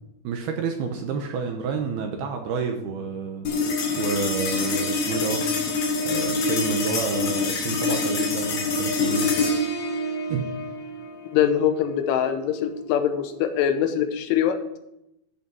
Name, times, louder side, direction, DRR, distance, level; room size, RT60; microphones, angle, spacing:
voice 1, 0.2-3.5 4.0-5.4 6.0-9.3 10.3-10.6, right 5 dB, 75° right, 3 dB, 2.4 m, -29 dB
sound 1, 3.5-14.1, left 3 dB, 60° left, 3.5 m, -26 dB
voice 2, 11.3-14.6, left 9 dB, 80° left, 8 dB, 3.4 m, -23 dB
13.5 x 5.7 x 6.2 m, 0.85 s
omnidirectional pair, 5.6 m